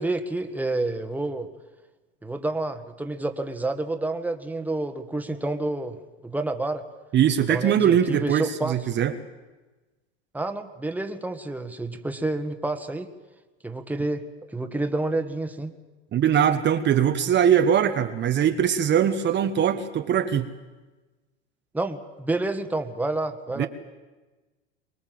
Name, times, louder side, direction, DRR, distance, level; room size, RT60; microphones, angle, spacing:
voice 1, 0.0-1.5 2.2-6.0 6.2-6.8 7.5-8.7 10.3-13.1 13.6-14.2 14.5-15.7 21.7-23.7, right 2 dB, 5° right, 6 dB, 1.7 m, -29 dB
voice 2, 7.1-9.2 16.1-20.5 23.6-23.7, right 9 dB, 35° right, 7 dB, 1.3 m, -21 dB
24.5 x 20.0 x 7.7 m, 1.2 s
hypercardioid pair, 100°, 31 cm